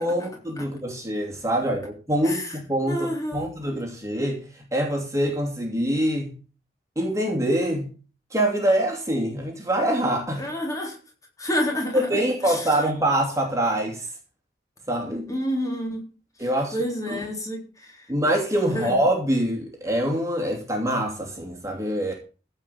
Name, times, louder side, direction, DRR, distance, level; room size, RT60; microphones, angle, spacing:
voice 1, 0.0-6.3 7.0-7.9 8.3-10.5 11.9-14.1 14.9-15.2 16.4-16.7 17.1-17.2 18.1-22.1, right 1 dB, 15° right, 0 dB, 2.8 m, -25 dB
voice 2, 2.2-2.6 2.9-3.5 10.4-11.0 11.4-12.8 15.3-16.0 16.4-18.1 18.7-19.0, equal, 20° left, 1 dB, 3.7 m, -29 dB
15.0 x 5.6 x 8.5 m, 0.37 s
head